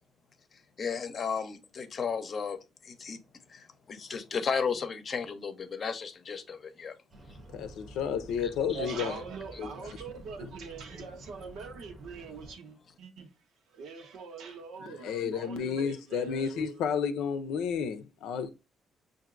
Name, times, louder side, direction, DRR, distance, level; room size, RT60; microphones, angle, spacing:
voice 1, 0.8-2.6 2.8-3.2 3.5-6.9, left 6 dB, 45° left, 0.7 m, -34 dB
sound 1, 7.1-12.5, right 1 dB, 40° right, 0.8 m, -49 dB
voice 2, 7.5-9.2 9.6-9.9 10.4-10.5 14.8-18.5, left 7 dB, 90° left, 0.5 m, -32 dB
voice 3, 8.7-13.3 13.7-16.8, right 5 dB, 80° right, 1.0 m, -43 dB
5.7 x 2.6 x 2.5 m
cardioid pair, 90°, 0 cm